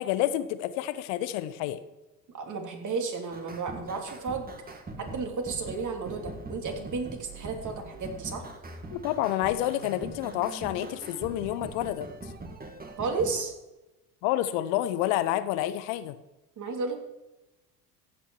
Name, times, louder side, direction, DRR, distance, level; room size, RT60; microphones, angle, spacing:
voice 1, 0.0-1.8 8.9-12.1 14.2-16.1, left 13 dB, 60° left, 13 dB, 1.1 m, -29 dB
voice 2, 2.3-8.5 13.0-13.5 16.6-17.0, right 4 dB, 35° right, 3 dB, 3.1 m, -33 dB
sound 1, 3.3-13.4, right 2 dB, 20° right, 2.1 m, -42 dB
15.0 x 8.5 x 4.8 m, 1.0 s
hypercardioid pair, 70°, 49 cm